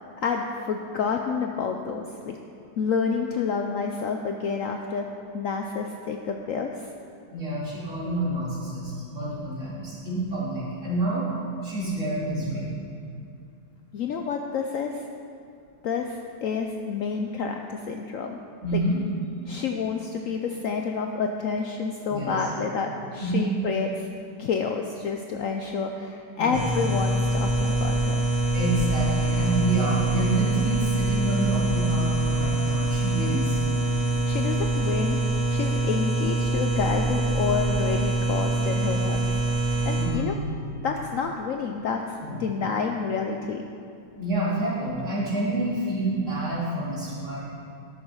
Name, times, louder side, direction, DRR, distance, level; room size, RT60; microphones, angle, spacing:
voice 1, 0.2-2.4 2.8-5.1 5.3-6.9 13.9-15.0 15.8-18.4 18.7-18.8 19.5-24.1 24.4-28.2 34.0-35.2 35.5-39.3 39.8-40.4 40.8-43.6, left 5 dB, 65° left, 3 dB, 0.8 m, -29 dB
voice 2, 7.3-11.3 11.6-12.7 18.6-19.0 22.1-22.3 23.2-23.5 26.4-26.6 28.5-33.6 40.0-40.4 42.3-42.4 44.2-47.4, right 2 dB, 45° right, -7 dB, 3.3 m, -28 dB
sound 1, 26.5-40.0, right 2 dB, 5° right, 2.2 m, -25 dB
12.5 x 7.0 x 5.7 m, 2.4 s
omnidirectional pair, 1.8 m